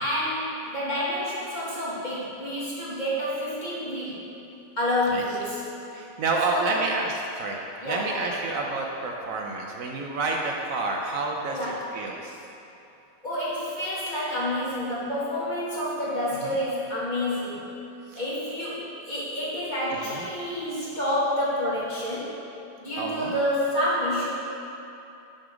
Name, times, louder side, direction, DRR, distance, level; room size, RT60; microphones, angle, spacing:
voice 1, 0.0-4.2 4.8-5.6 6.5-6.8 7.8-8.4 11.5-11.9 13.2-17.7 18.2-22.4 22.8-24.3, left 1 dB, 30° left, -9 dB, 1.8 m, -28 dB
voice 2, 5.9-7.6 7.8-12.4 16.4-16.6 18.1-18.2 20.0-20.3 23.0-23.3, right 3 dB, 70° right, 0 dB, 1.0 m, -29 dB
6.3 x 5.7 x 4.9 m, 2.8 s
omnidirectional pair, 1.6 m